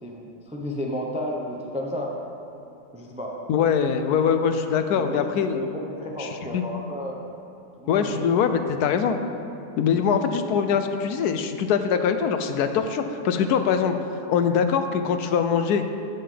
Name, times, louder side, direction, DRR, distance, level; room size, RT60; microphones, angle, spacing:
voice 1, 0.0-2.1 2.9-3.4 4.9-7.2 7.8-8.3, equal, 10° right, -1 dB, 0.3 m, -32 dB
voice 2, 3.5-5.6 6.2-6.6 7.9-9.2 9.8-13.9 14.3-15.8, left 7 dB, 75° left, 8 dB, 1.1 m, -23 dB
15.5 x 5.6 x 3.3 m, 2.8 s
omnidirectional pair, 1.7 m